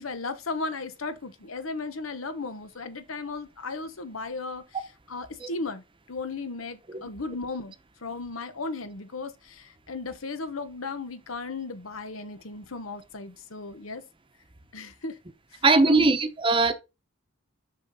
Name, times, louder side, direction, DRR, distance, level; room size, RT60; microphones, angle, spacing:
voice 1, 0.0-4.6 5.1-7.7 8.0-14.0 14.7-15.2 15.5-16.1, left 3 dB, 85° left, 1.1 m, -36 dB
voice 2, 15.6-16.7, right 3 dB, 25° right, 0.8 m, -20 dB
7.0 x 5.7 x 4.1 m
head